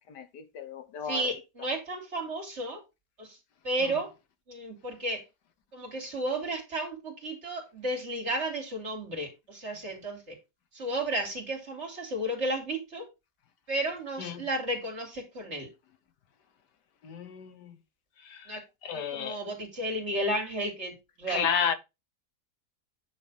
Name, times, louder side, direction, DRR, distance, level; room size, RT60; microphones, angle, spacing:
voice 1, 0.1-1.4 3.8-4.0 14.2-14.5 17.0-17.8 18.2-18.6 18.8-19.4 21.3-21.7, left 7 dB, 85° left, 1.6 m, -33 dB
voice 2, 1.1-2.8 3.2-3.4 3.6-4.1 4.5-5.2 5.7-10.3 10.7-13.0 13.7-15.7 18.5-18.6 19.1-21.5, right 1 dB, 40° right, 3.2 m, -33 dB
9.5 x 3.3 x 5.6 m
omnidirectional pair, 1.8 m